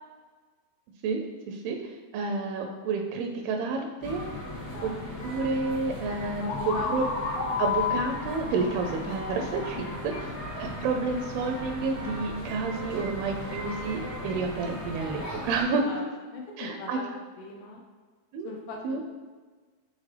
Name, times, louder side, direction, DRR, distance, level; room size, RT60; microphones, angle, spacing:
voice 1, 1.0-4.2 4.8-4.9 5.2-7.0 7.6-10.1 10.6-16.0 16.6-17.0 18.3-18.5 18.8-19.0, right 4 dB, 85° right, 3 dB, 2.4 m, -30 dB
sound 1, 4.0-15.6, left 1 dB, 35° left, 0.9 m, -37 dB
voice 2, 4.6-5.3 6.4-7.1 9.8-10.0 15.7-16.0 16.3-17.8 18.4-18.8, left 3 dB, 90° left, 0 dB, 1.8 m, -39 dB
sound 2, 6.5-10.2, left 6 dB, 70° left, 2.2 m, -32 dB
8.6 x 3.8 x 3.2 m, 1.4 s
omnidirectional pair, 4.4 m